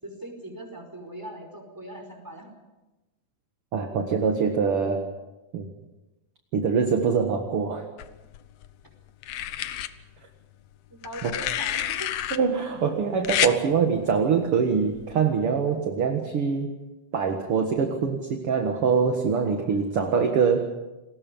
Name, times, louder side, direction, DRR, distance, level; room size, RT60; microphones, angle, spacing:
voice 1, 0.0-2.5 10.9-12.1 19.4-19.8, right 1 dB, 5° right, 2 dB, 4.7 m, -40 dB
voice 2, 3.7-5.0 5.5-5.7 6.5-7.9 11.2-11.3 12.3-16.7 17.1-20.6, right 6 dB, 50° right, 4 dB, 2.1 m, -24 dB
sound 1, 8.0-8.7 9.2-9.9 11.0-12.4 13.2-13.6 14.9-15.1, left 12 dB, 80° left, 1.4 m, -28 dB
29.5 x 21.5 x 5.4 m, 1.0 s
omnidirectional pair, 4.0 m